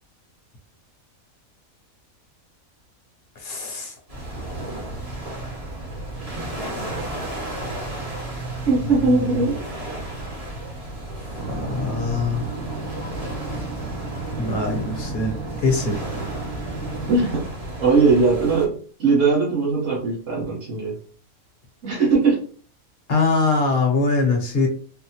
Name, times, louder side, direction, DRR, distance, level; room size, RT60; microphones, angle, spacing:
voice 1, 3.4-4.0 8.8-9.5 11.2-12.6 14.4-16.0 23.1-24.7, left 3 dB, 50° left, 2 dB, 0.9 m, -23 dB
sound 1, 4.1-18.7, right 1 dB, 30° right, 1.0 m, -33 dB
voice 2, 8.7-9.6 17.1-17.4 17.8-18.7 19.0-21.0 21.8-22.4, right 4 dB, 55° right, -6 dB, 1.4 m, -19 dB
sound 2, 11.4-17.3, right 3 dB, 80° right, 1.5 m, -33 dB
4.0 x 2.1 x 2.8 m, 0.43 s
omnidirectional pair, 1.5 m